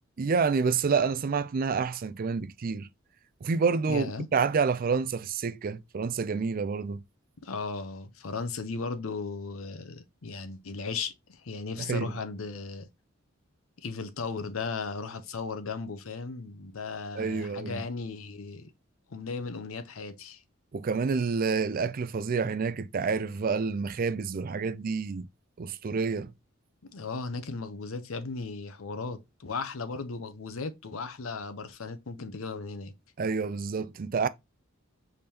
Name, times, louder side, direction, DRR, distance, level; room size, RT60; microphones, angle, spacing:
voice 1, 0.2-2.9 3.4-4.1 4.3-7.0 11.8-12.1 17.1-17.8 20.7-25.3 25.6-26.3 33.2-34.3, right 5 dB, 45° right, 0.4 m, -28 dB
voice 2, 3.9-4.3 7.4-12.9 13.8-18.7 19.1-20.4 26.9-32.9, left 4 dB, 80° left, 0.7 m, -36 dB
5.1 x 3.6 x 2.8 m
head